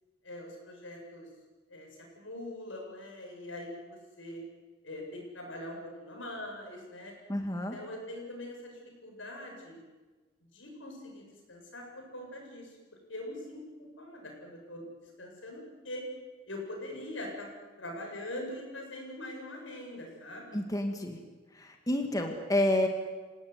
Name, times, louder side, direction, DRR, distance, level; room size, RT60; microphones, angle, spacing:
voice 1, 0.2-1.3 1.7-1.9 2.2-4.4 4.8-7.1 7.5-9.8 10.5-12.7 13.1-14.9 15.2-16.0 16.5-17.5 17.8-20.6, left 1 dB, 85° left, 1 dB, 8.0 m, -43 dB
voice 2, 7.3-7.8 20.5-21.2 21.5-22.9, left 1 dB, 20° left, 3 dB, 2.1 m, -29 dB
27.5 x 18.0 x 9.5 m, 1.3 s
head